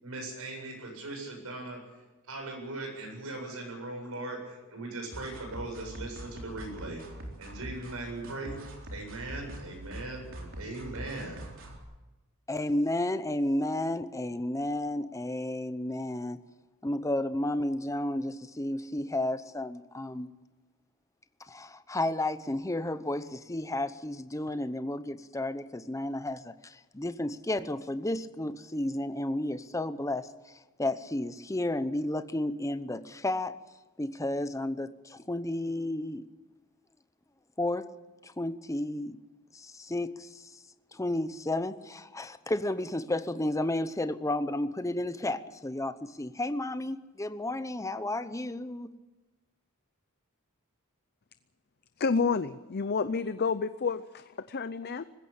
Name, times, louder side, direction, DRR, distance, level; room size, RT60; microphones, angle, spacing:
voice 1, 0.0-1.8 2.3-7.0 7.4-8.6 8.9-11.4, right 2 dB, 80° right, 1 dB, 7.9 m, -39 dB
sound 1, 5.1-11.8, right 1 dB, 60° right, 4.0 m, -43 dB
voice 2, 12.5-16.4 16.8-20.3 21.4-33.5 34.0-36.2 37.6-37.9 38.2-39.2 39.5-40.6 40.9-48.9, left 1 dB, 15° left, 12 dB, 0.8 m, -32 dB
voice 3, 52.0-55.0, left 5 dB, 50° left, 13 dB, 0.6 m, -29 dB
20.0 x 16.0 x 8.8 m, 1.1 s
head